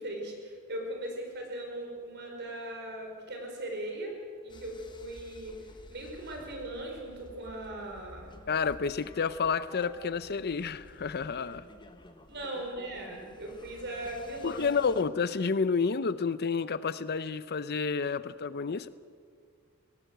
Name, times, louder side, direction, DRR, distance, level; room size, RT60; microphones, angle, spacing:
voice 1, 0.0-4.1 4.4-5.5 5.9-8.4 12.3-14.7, right 1 dB, 50° right, 2 dB, 4.8 m, -39 dB
sound 1, 4.5-15.0, left 1 dB, 20° left, 1.2 m, -52 dB
voice 2, 8.5-11.7 14.4-18.9, left 5 dB, 45° left, 15 dB, 0.6 m, -30 dB
19.5 x 17.5 x 8.0 m, 2.1 s
head